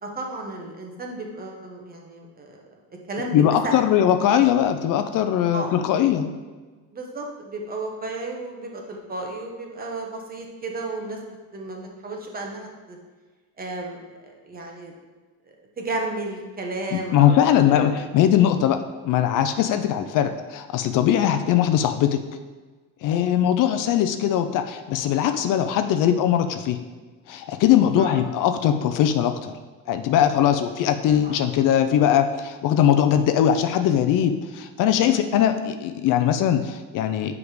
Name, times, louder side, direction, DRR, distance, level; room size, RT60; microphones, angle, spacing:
voice 1, 0.0-3.8 5.5-5.7 6.9-11.2 11.5-13.0 13.6-14.9 15.4-18.0 19.7-19.9 21.3-21.4 23.2-23.4 28.0-28.1 31.1-31.4 35.4-35.5, right 2 dB, 25° right, 1 dB, 1.1 m, -33 dB
voice 2, 3.3-6.3 16.9-18.8 19.0-22.2 23.0-26.8 27.3-29.5 29.9-37.3, left 10 dB, 60° left, 8 dB, 0.6 m, -20 dB
7.1 x 4.8 x 5.0 m, 1.3 s
cardioid pair, 155°, 36 cm